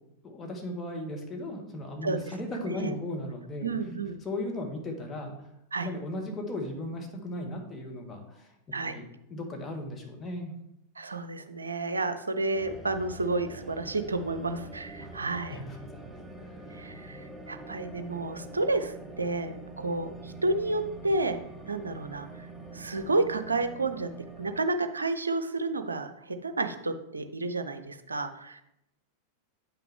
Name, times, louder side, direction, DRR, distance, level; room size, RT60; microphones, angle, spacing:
voice 1, 0.2-3.7 4.2-5.5 5.8-8.5 8.8-9.0 9.3-10.5 15.0-15.1 15.5-16.6, left 1 dB, 20° left, 1 dB, 1.5 m, -36 dB
voice 2, 3.6-4.2 5.7-5.9 8.7-9.0 11.0-15.6 16.7-21.4 21.7-22.5 22.7-24.1 24.4-28.6, right 2 dB, 75° right, 9 dB, 0.6 m, -31 dB
sound 1, 12.5-24.6, right 2 dB, ahead, 1.0 m, -45 dB
8.7 x 5.8 x 3.5 m, 0.83 s
figure-of-eight pair, 90°, 0 cm